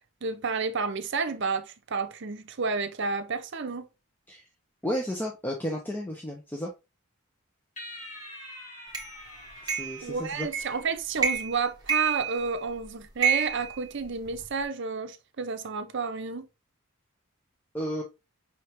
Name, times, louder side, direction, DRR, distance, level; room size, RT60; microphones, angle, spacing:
voice 1, 0.2-3.9 10.0-16.5, right 4 dB, 55° right, 0.6 m, -31 dB
voice 2, 4.8-6.7 9.6-10.5 17.7-18.0, equal, 10° left, 0.5 m, -32 dB
sound 1, 7.8-11.3, left 1 dB, 35° left, 1.8 m, -45 dB
sound 2, 8.9-9.1 9.7-10.0 10.5-10.8 11.2-11.6 11.9-12.7 13.2-14.5, right 7 dB, 20° right, 1.0 m, -28 dB
5.7 x 3.2 x 2.8 m
head